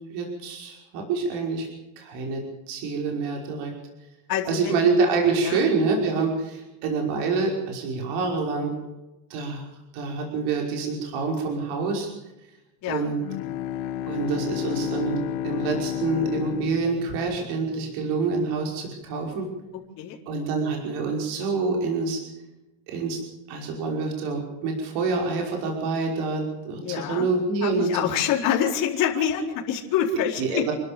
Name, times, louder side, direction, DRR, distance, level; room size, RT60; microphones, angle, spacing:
voice 1, 0.1-1.7 2.0-3.7 4.5-8.7 9.3-9.7 9.9-12.1 12.9-13.2 14.1-19.5 20.3-22.2 22.9-23.2 23.5-27.9 30.4-30.7, right 4 dB, 50° right, 1 dB, 5.6 m, -26 dB
voice 2, 4.3-4.8 5.4-5.6 12.8-13.1 19.7-20.2 26.7-27.3 27.6-30.6, left 9 dB, 40° left, -2 dB, 4.4 m, -26 dB
Bowed string instrument, 13.2-18.2, left 10 dB, 60° left, 1.7 m, -31 dB
30.0 x 12.5 x 7.1 m, 0.96 s
cardioid pair, 170°, 49 cm